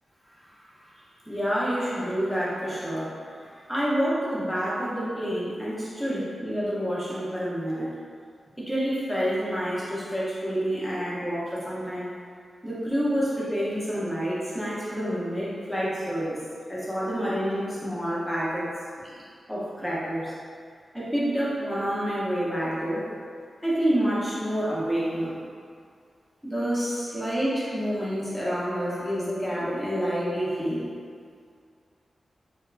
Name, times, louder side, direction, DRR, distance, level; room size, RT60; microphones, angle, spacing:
voice 1, 0.7-3.1 3.4-7.9 8.6-12.1 12.6-16.4 16.7-18.7 19.2-19.3 19.5-20.3 20.9-23.1 23.6-25.4 26.4-30.9, equal, ahead, -8 dB, 0.7 m, -28 dB
2.9 x 2.2 x 2.3 m, 2.2 s
wide cardioid pair, 110°, 0 cm